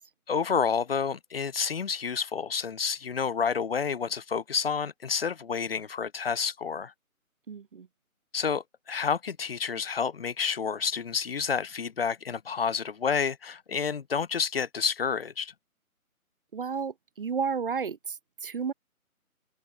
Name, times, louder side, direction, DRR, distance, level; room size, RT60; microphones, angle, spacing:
voice 1, 0.3-6.9 8.3-15.5, left 6 dB, 40° left, 2.5 m, -29 dB
voice 2, 7.5-7.9 16.5-18.7, right 6 dB, 40° right, 1.6 m, -32 dB
figure-of-eight pair, 165°, 43 cm